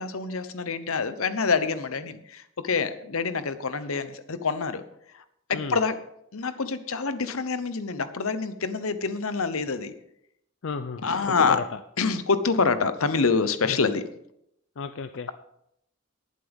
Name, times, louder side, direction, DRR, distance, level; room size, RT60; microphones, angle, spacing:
voice 1, 0.0-4.8 5.1-6.0 6.3-9.9 11.0-11.6 12.0-14.0, left 4 dB, 75° left, 12 dB, 0.9 m, -26 dB
voice 2, 10.6-11.0 11.5-11.6 13.6-13.9 14.8-15.3, left 4 dB, 60° left, 9 dB, 0.5 m, -33 dB
20.5 x 7.5 x 3.6 m, 0.76 s
head